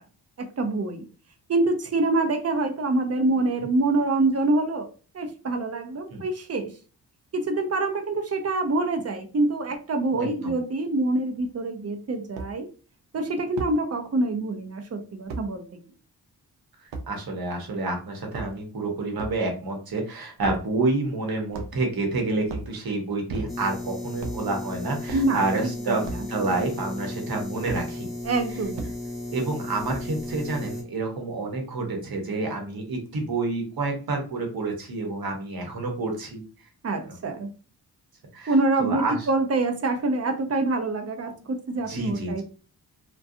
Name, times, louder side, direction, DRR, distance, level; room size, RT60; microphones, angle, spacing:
voice 1, 0.4-1.1 1.5-4.9 5.1-6.7 7.3-12.7 13.1-15.6 25.1-26.3 28.2-28.9 36.8-37.5 38.5-42.4, right 2 dB, 35° right, 6 dB, 0.6 m, -26 dB
voice 2, 10.1-10.5 17.1-28.1 29.3-36.4 37.1-37.2 38.3-39.2 41.9-42.4, right 3 dB, 60° right, 2 dB, 1.0 m, -29 dB
sound 1, 11.4-11.5 12.4-12.5 13.6-13.8 15.3-15.5 16.9-17.1 18.2-18.7 19.2-19.4 20.4-20.7 21.5-21.9 22.4-22.7 23.3-23.8 24.2-24.4 25.1-25.3 26.0-26.3 27.7-27.8 28.7-28.9 29.9-30.2, right 3 dB, 85° right, 0.6 m, -35 dB
sound 2, 23.5-30.8, left 2 dB, ahead, 1.2 m, -35 dB
2.4 x 2.2 x 2.6 m, 0.38 s
cardioid pair, 50°, 42 cm